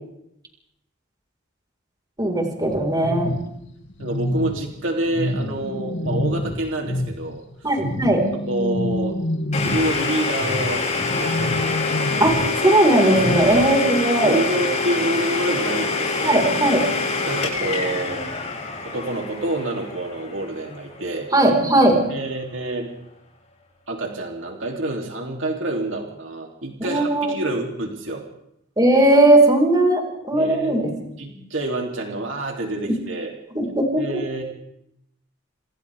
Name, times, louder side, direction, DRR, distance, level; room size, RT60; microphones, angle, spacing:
voice 1, 2.2-3.3 7.6-8.2 12.2-14.4 16.2-16.8 21.3-22.0 26.8-27.3 28.8-30.9 32.8-32.9 33.5-34.2, right 1 dB, 20° right, 1 dB, 4.9 m, -18 dB
sound 1, 2.7-7.3 7.7-13.7, left 1 dB, 65° left, 2.4 m, -28 dB
voice 2, 4.0-7.4 8.5-9.2 9.6-10.9 11.2-11.8 13.3-16.5 17.3-18.2 18.8-21.3 22.1-22.9 23.9-28.2 30.3-30.8 31.2-33.3 34.0-34.4, right 1 dB, 70° right, 1 dB, 3.2 m, -27 dB
Domestic sounds home sounds, 9.5-21.2, left 4 dB, 35° left, 7.4 m, -25 dB
27.0 x 27.0 x 3.6 m, 0.78 s
head